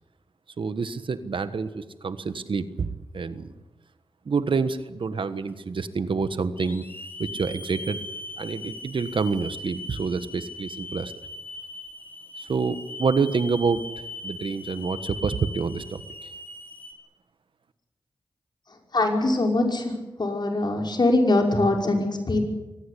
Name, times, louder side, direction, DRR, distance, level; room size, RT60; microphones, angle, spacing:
voice 1, 0.6-3.5 4.2-6.9 7.2-8.0 8.4-11.1 12.4-16.0, right 5 dB, 75° right, 12 dB, 1.4 m, -27 dB
Hiss / Alarm, 5.5-5.6 6.6-16.9, left 2 dB, 20° left, 4.3 m, -39 dB
voice 2, 18.9-19.9 20.2-22.4, left 2 dB, 55° left, 2 dB, 5.8 m, -22 dB
23.5 x 18.5 x 8.5 m, 1.1 s
cardioid pair, 50°, 9 cm